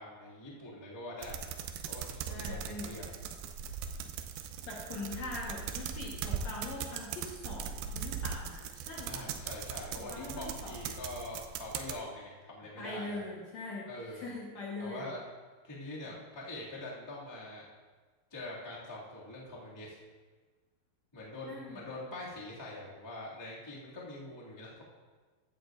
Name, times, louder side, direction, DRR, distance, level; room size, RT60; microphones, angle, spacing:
voice 1, 0.0-1.4 1.9-3.1 9.1-13.2 13.9-14.3 14.8-15.2 15.6-17.6 18.3-20.0 21.1-24.8, left 1 dB, 15° left, -7 dB, 1.1 m, -44 dB
sound 1, 1.2-12.0, right 7 dB, 80° right, 2.1 m, -40 dB
voice 2, 2.3-2.9 4.7-9.3 10.1-10.7 12.8-13.9 14.1-15.1 16.0-16.2 21.5-21.8, left 2 dB, 60° left, -4 dB, 2.1 m, -42 dB
14.5 x 10.5 x 2.6 m, 1.4 s
omnidirectional pair, 4.6 m